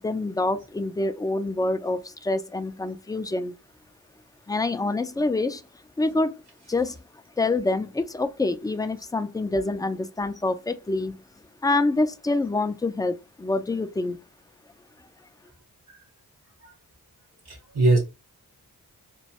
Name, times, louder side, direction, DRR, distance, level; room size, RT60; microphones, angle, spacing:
voice 1, 0.0-3.5 4.5-5.6 6.0-6.4 6.7-7.0 7.4-11.2 11.6-14.2, left 2 dB, 10° left, 0.4 m, -26 dB
voice 2, 17.4-18.0, right 2 dB, 70° right, 1.3 m, -22 dB
3.1 x 2.3 x 2.8 m
cardioid pair, 45°, 39 cm